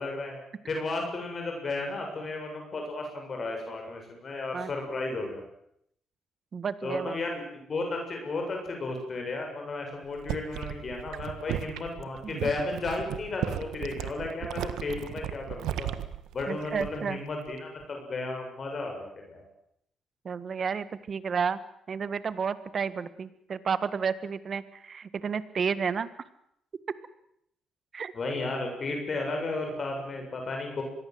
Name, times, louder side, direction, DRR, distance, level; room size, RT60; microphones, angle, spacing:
voice 1, 0.0-5.4 6.8-7.4 7.7-15.9 16.3-19.4 28.1-30.8, left 2 dB, 45° left, 2 dB, 7.3 m, -34 dB
voice 2, 6.5-7.2 12.4-12.5 16.5-17.2 20.2-21.6 21.9-26.1 27.9-28.1, right 6 dB, 45° right, 14 dB, 1.8 m, -31 dB
sound 1, 10.0-17.2 17.5-17.8, right 11 dB, 85° right, 1.6 m, -36 dB
26.0 x 21.0 x 7.9 m, 0.74 s
cardioid pair, 90°, 0 cm